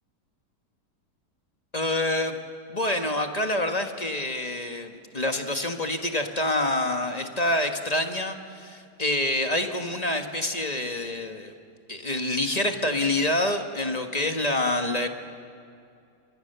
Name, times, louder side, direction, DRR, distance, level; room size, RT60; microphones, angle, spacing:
voice 1, 1.7-2.4 2.7-11.5 11.9-15.1, left 1 dB, 25° left, 5 dB, 1.6 m, -27 dB
30.0 x 23.0 x 6.9 m, 2.4 s
omnidirectional pair, 1.8 m